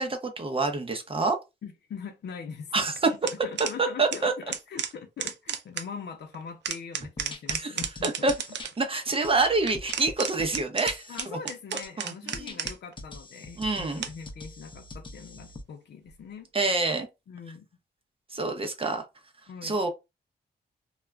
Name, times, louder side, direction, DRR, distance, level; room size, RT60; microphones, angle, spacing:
voice 1, 0.0-1.4 2.7-3.1 3.8-4.3 7.5-8.3 8.8-11.4 12.0-12.6 13.6-14.1 16.5-17.1 18.3-19.0 19.6-19.9, right 3 dB, 30° right, 0.6 m, -27 dB
voice 2, 1.6-2.9 3.4-8.3 11.1-16.5 17.3-17.6 19.5-19.8, left 6 dB, 75° left, 0.6 m, -42 dB
sound 1, 3.0-3.8 4.1-4.2 4.5-5.9 6.3-8.8 9.7-12.9 14.0-14.4 16.1-16.2, right 8 dB, 80° right, 0.5 m, -34 dB
sound 2, 6.7-6.8 7.2-8.7 9.2-11.3 11.8-11.9 12.3-15.6, left 2 dB, 30° left, 0.5 m, -43 dB
2.3 x 2.0 x 3.3 m
wide cardioid pair, 110°, 18 cm